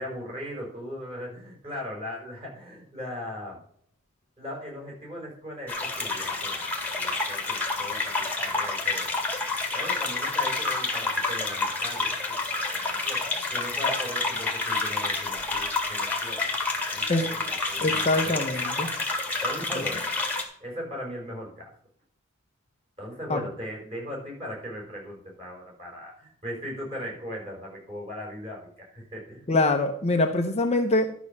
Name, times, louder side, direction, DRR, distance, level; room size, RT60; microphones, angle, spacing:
voice 1, 0.0-3.6 4.4-6.6 6.9-8.1 8.4-9.2 9.7-12.4 12.7-16.5 16.9-18.5 19.4-20.2 20.6-21.7 23.0-29.5, equal, 25° right, -2 dB, 5.3 m, -38 dB
sound 1, 5.7-20.4, left 3 dB, 5° left, 1.8 m, -29 dB
voice 2, 17.8-18.9 19.7-19.9 23.3-23.4 29.5-31.1, left 2 dB, 30° left, 4 dB, 0.8 m, -24 dB
12.0 x 6.1 x 5.3 m, 0.64 s
head